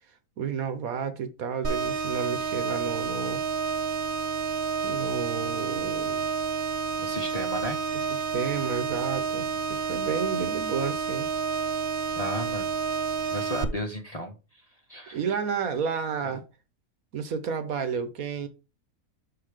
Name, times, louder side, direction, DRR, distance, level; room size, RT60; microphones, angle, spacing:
voice 1, 0.4-3.4 4.8-6.2 7.9-11.3 15.1-16.4 17.1-18.5, right 6 dB, 65° right, 1.3 m, -31 dB
sound 1, 1.6-13.6, right 6 dB, 40° right, 1.0 m, -29 dB
voice 2, 7.0-7.8 12.1-12.8 13.3-14.3 14.9-15.2, equal, 30° left, 0.9 m, -33 dB
5.9 x 4.8 x 4.9 m
omnidirectional pair, 1.6 m